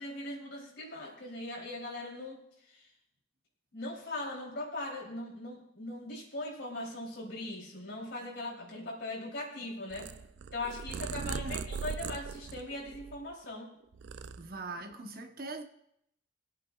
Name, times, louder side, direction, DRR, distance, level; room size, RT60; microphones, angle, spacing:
voice 1, 0.0-2.4 3.7-10.1 10.5-13.7, left 2 dB, 75° left, 3.2 m, -40 dB
Purr, 9.9-13.5 13.8-14.9, right 6 dB, 70° right, 0.4 m, -40 dB
voice 2, 11.2-11.6 14.4-15.6, right 3 dB, 50° right, 0.9 m, -42 dB
23.5 x 8.5 x 2.4 m
head